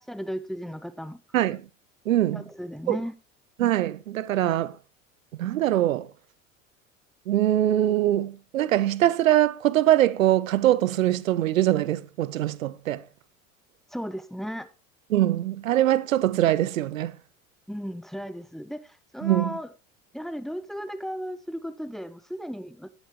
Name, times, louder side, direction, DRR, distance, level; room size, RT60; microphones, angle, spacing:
voice 1, 0.1-1.2 2.3-3.1 13.9-14.7 17.7-19.7 20.1-22.9, equal, ahead, 0.8 m, -35 dB
voice 2, 1.3-1.7 2.1-2.4 2.9-3.0 3.6-4.8 5.3-6.1 7.3-13.0 15.1-17.1 19.2-19.6, right 13 dB, 75° right, 0.8 m, -23 dB
18.5 x 7.3 x 3.0 m
figure-of-eight pair, 75°, 40 cm